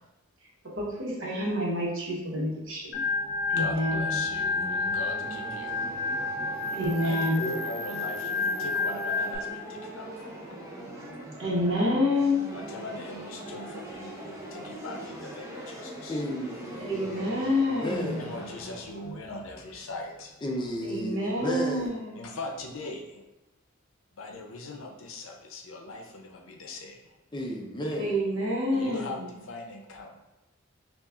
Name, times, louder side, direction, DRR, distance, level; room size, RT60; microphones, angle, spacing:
voice 1, 0.6-3.0 3.5-4.1 6.7-7.5 11.4-12.5 16.8-18.3 20.8-22.1 27.9-29.3, left 1 dB, 70° right, -3 dB, 1.0 m, -28 dB
sound 1, 2.6-20.5, right 1 dB, 15° right, 0.6 m, -42 dB
Organ, 2.9-9.4, left 3 dB, 55° left, 0.9 m, -30 dB
voice 2, 3.5-6.0 7.0-10.6 12.5-16.2 17.9-20.3 22.2-23.2 24.1-27.1 28.7-30.2, left 2 dB, 80° left, 2 dB, 0.6 m, -40 dB
voice 3, 16.1-17.4 17.8-18.4 20.4-22.0 27.3-28.2, equal, 25° left, 0 dB, 0.6 m, -33 dB
5.6 x 2.4 x 2.4 m, 1.0 s
head